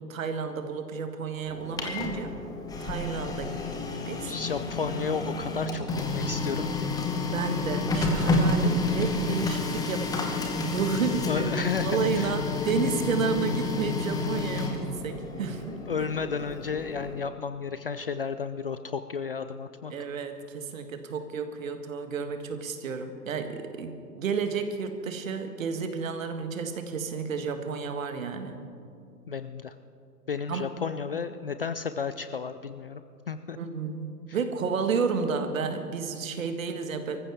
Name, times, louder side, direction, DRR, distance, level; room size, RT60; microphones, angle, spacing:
voice 1, 0.0-2.3 2.8-4.3 7.3-16.1 19.9-28.6 30.5-30.7 33.6-37.2, right 5 dB, 55° right, 7 dB, 1.7 m, -31 dB
Printer, 1.5-17.3, left 3 dB, 10° left, 1.0 m, -30 dB
voice 2, 4.2-6.9 11.3-12.3 15.9-19.9 29.3-29.7 30.3-33.0 33.3-33.6, left 5 dB, 40° left, 11 dB, 0.4 m, -33 dB
23.5 x 14.5 x 3.5 m, 2.5 s
figure-of-eight pair, 120°, 48 cm